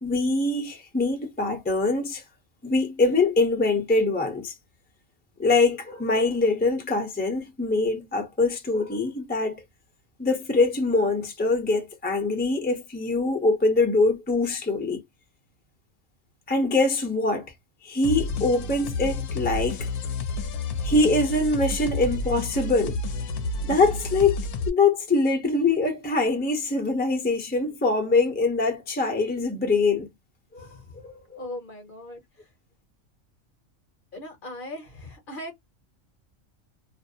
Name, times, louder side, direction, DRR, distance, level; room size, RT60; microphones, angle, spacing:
voice 1, 0.0-2.2 2.6-4.5 5.4-9.6 10.2-15.0 16.5-17.5 17.8-19.9 20.8-23.0 23.7-24.4 24.7-30.1 30.5-30.8 31.0-31.4, left 3 dB, 10° left, 0.6 m, -23 dB
sound 1, 18.0-24.7, left 2 dB, 75° left, 0.9 m, -30 dB
voice 2, 30.6-31.0 31.4-32.5 34.1-35.6, left 1 dB, 45° left, 0.9 m, -39 dB
2.6 x 2.1 x 2.5 m
omnidirectional pair, 1.4 m